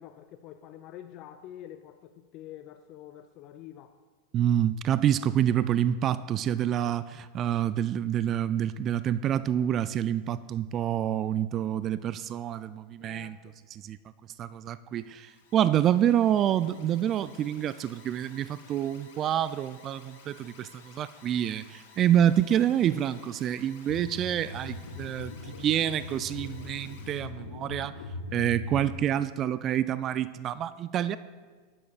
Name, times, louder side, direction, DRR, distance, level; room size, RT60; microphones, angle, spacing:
voice 1, 0.0-4.0 13.0-13.6, left 11 dB, 50° left, 8 dB, 0.5 m, -47 dB
voice 2, 4.3-13.4 13.7-14.0 14.4-27.9 28.3-31.2, right 10 dB, 40° right, 14 dB, 0.3 m, -27 dB
Alarm, 14.9-27.3, left 5 dB, 70° left, 2.2 m, -55 dB
sound 1, 23.9-28.9, left 3 dB, 85° left, 1.0 m, -40 dB
19.5 x 9.9 x 2.4 m, 1.5 s
hypercardioid pair, 95°, 0 cm